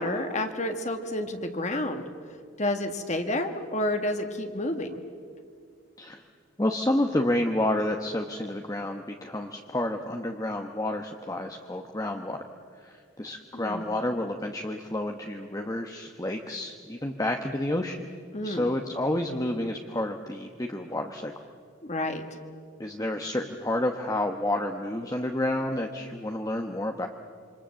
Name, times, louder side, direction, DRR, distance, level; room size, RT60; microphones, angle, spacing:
voice 1, 0.0-2.0 2.6-5.0 13.5-13.8 18.3-18.7 21.9-22.2, left 1 dB, 35° left, 6 dB, 1.7 m, -30 dB
voice 2, 6.6-12.4 12.8-18.1 18.4-21.3 22.8-27.1, left 1 dB, 20° left, 3 dB, 1.0 m, -30 dB
27.5 x 25.5 x 7.6 m, 2.2 s
head